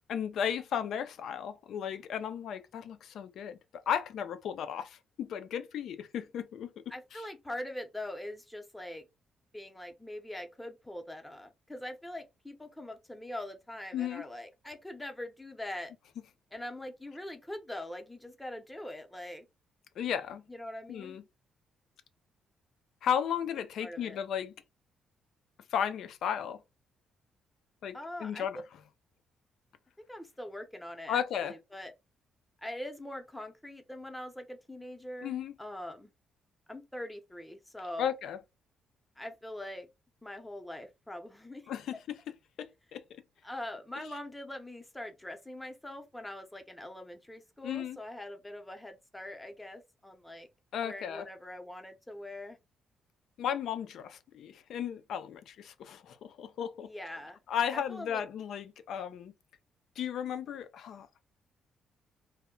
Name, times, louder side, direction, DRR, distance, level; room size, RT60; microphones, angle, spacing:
voice 1, 0.1-3.6 3.9-6.7 13.9-14.2 20.0-20.4 20.9-21.2 23.0-24.5 25.7-26.6 27.8-28.6 31.1-31.5 35.2-35.5 38.0-38.4 41.7-42.2 42.6-43.0 47.6-48.0 50.7-51.2 53.4-56.9 57.5-59.3 60.0-61.1, left 8 dB, 70° left, 0.4 m, -34 dB
voice 2, 6.9-9.1 9.5-15.9 16.5-19.4 20.5-21.2 23.8-24.2 27.9-28.6 30.1-31.9 32.6-36.1 36.7-38.1 39.2-39.9 40.2-41.7 43.4-50.5 50.8-52.6 56.8-57.4 57.7-58.2, left 1 dB, 10° left, 0.7 m, -43 dB
2.1 x 2.1 x 3.7 m
cardioid pair, 90°, 0 cm